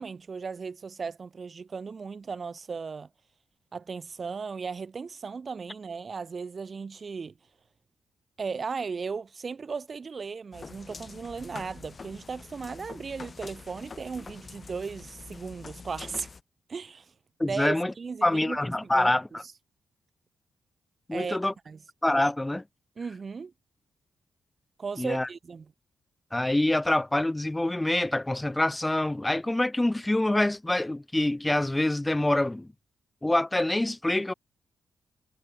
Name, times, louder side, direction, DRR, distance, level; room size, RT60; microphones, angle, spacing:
voice 1, 0.0-3.1 3.7-7.3 8.4-16.3 16.7-17.1 17.4-19.1 21.1-21.4 21.7-21.8 23.0-23.5 24.8-25.7, right 5 dB, 40° right, 0.6 m, -36 dB
sound 1, 10.5-16.4, left 4 dB, 35° left, 2.6 m, -45 dB
voice 2, 17.4-17.9 18.2-19.4 21.1-21.5 22.0-22.6 25.0-25.3 26.3-32.7 33.2-34.3, left 1 dB, 10° left, 0.5 m, -26 dB
cardioid pair, 95°, 0 cm